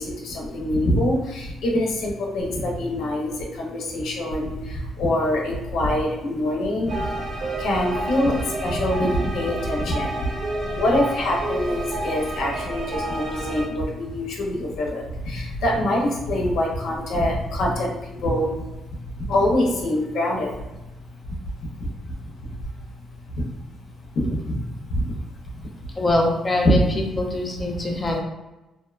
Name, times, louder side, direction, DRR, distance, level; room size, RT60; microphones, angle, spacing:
voice 1, 0.0-7.1 7.6-10.3 10.6-18.6 19.1-20.5 21.3-22.5 23.3-23.5 24.1-25.2 26.6-26.8, left 1 dB, 75° left, -1 dB, 0.6 m, -24 dB
sound 1, 6.9-13.7, right 1 dB, 55° right, 0.9 m, -29 dB
voice 2, 26.0-26.8 27.2-28.2, left 1 dB, 20° left, 0 dB, 0.5 m, -23 dB
2.6 x 2.2 x 2.3 m, 1.0 s
cardioid pair, 115°, 0 cm